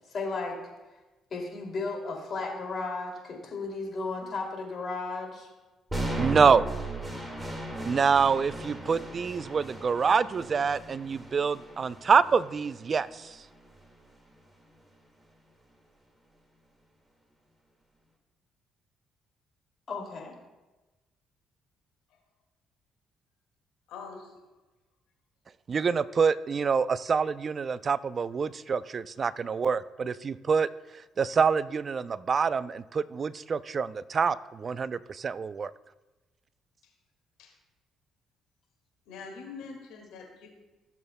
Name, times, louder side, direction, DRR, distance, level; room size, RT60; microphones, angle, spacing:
voice 1, 0.1-0.6 1.3-5.5 19.9-20.3, left 3 dB, 50° left, 1 dB, 2.5 m, -34 dB
sound 1, 5.9-13.9, right 1 dB, 10° right, 1.9 m, -37 dB
voice 2, 6.2-6.6 7.9-13.4 25.7-30.7 31.2-35.7, right 5 dB, 45° right, 17 dB, 0.4 m, -26 dB
voice 3, 23.9-24.4 36.8-36.9 37.4-37.6 39.1-40.5, left 5 dB, 80° left, 1 dB, 2.0 m, -44 dB
16.0 x 7.0 x 2.2 m, 1.1 s
supercardioid pair, 70°, 0 cm